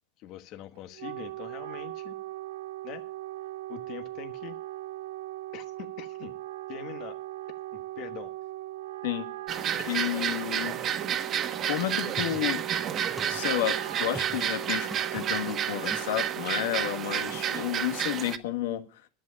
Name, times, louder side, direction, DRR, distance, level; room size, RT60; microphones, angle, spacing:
voice 1, 0.2-2.2 2.8-3.1 3.7-4.6 5.5-6.4 6.7-7.2 7.7-8.3 9.8-10.1, left 12 dB, 55° left, 7 dB, 1.3 m, -43 dB
Wind instrument woodwind instrument, 0.8-18.2, right 16 dB, 85° right, 0.5 m, -39 dB
sound 1, 9.5-18.4, right 9 dB, 40° right, 1.2 m, -31 dB
voice 2, 9.9-10.8 11.6-12.6 13.3-19.0, left 12 dB, 90° left, 7 dB, 1.7 m, -31 dB
sound 2, 11.8-16.1 17.3-17.7, right 1 dB, 5° right, 1.0 m, -43 dB
11.0 x 7.5 x 8.7 m, 0.38 s
supercardioid pair, 125°, 0 cm